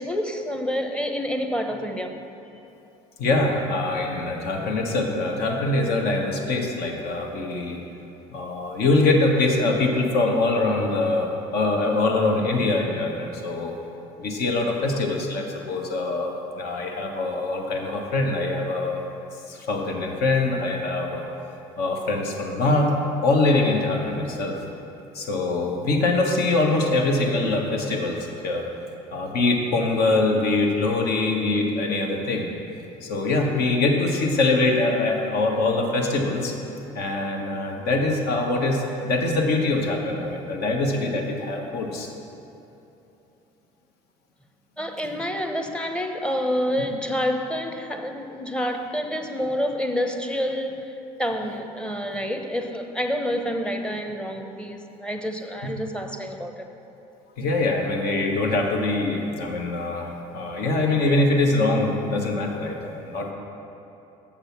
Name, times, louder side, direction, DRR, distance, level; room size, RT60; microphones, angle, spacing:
voice 1, 0.0-2.2 44.8-56.7, equal, 5° left, 5 dB, 0.9 m, -28 dB
voice 2, 3.2-7.8 8.3-13.7 14.2-19.0 19.5-21.2 21.8-23.0 23.2-24.6 25.1-28.2 28.4-28.6 29.1-32.5 33.0-36.5 36.9-42.1 57.4-63.3, left 2 dB, 60° left, 2 dB, 1.3 m, -23 dB
7.2 x 6.7 x 5.9 m, 3.0 s
hypercardioid pair, 70°, 18 cm